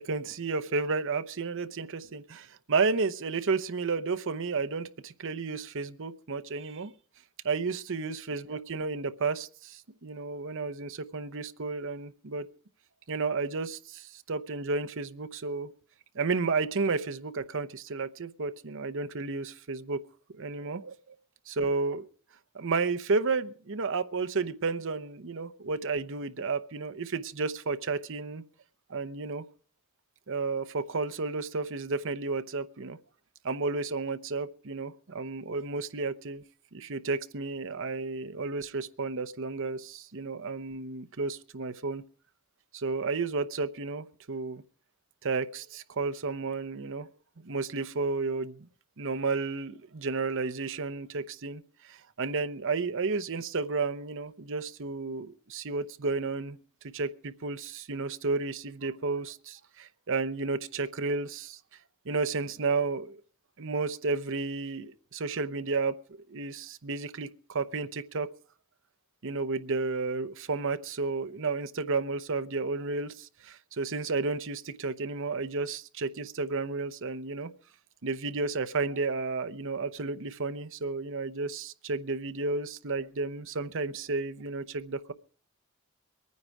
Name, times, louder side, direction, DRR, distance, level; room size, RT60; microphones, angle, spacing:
voice 1, 0.0-6.9 7.4-12.5 13.1-15.7 16.1-20.0 20.3-21.2 21.5-22.1 22.5-28.4 28.9-29.4 30.3-33.0 33.4-36.4 36.7-42.0 42.7-44.6 45.2-47.1 47.4-48.7 49.0-56.6 56.9-61.6 62.0-63.2 63.6-66.0 66.3-68.3 69.2-77.5 78.0-85.1, right 4 dB, 60° right, 11 dB, 0.9 m, -32 dB
22.5 x 9.6 x 4.8 m, 0.44 s
head